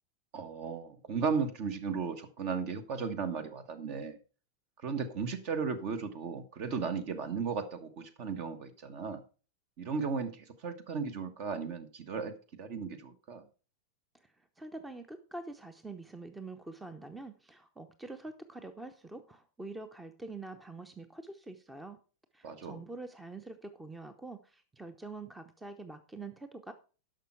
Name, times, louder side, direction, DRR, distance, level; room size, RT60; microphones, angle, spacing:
voice 1, 0.3-4.2 4.8-9.2 9.8-13.4 22.4-22.8, right 5 dB, 45° right, 10 dB, 1.4 m, -35 dB
voice 2, 14.2-22.0 22.3-26.7, right 3 dB, 10° right, 10 dB, 0.8 m, -45 dB
11.0 x 6.4 x 4.6 m, 0.37 s
figure-of-eight pair, 90°, 0 cm